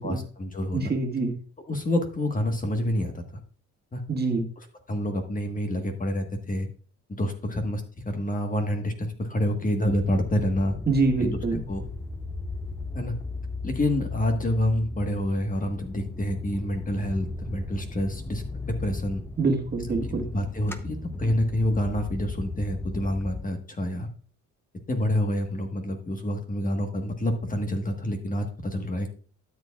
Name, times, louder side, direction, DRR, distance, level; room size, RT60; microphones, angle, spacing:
voice 1, 0.0-0.9 1.7-3.4 3.9-4.0 4.6-6.7 7.1-10.8 11.2-11.4 11.7-11.8 12.9-13.1 13.6-19.2 20.3-24.1 24.9-29.2, left 1 dB, 25° left, 4 dB, 1.4 m, -28 dB
voice 2, 0.7-1.3 4.1-4.4 10.9-11.6 19.4-20.3, right 3 dB, 30° right, 2 dB, 1.7 m, -25 dB
sound 1, 9.8-23.5, left 2 dB, 10° left, 0.7 m, -36 dB
12.5 x 7.3 x 2.4 m, 0.40 s
cardioid pair, 90°, 30 cm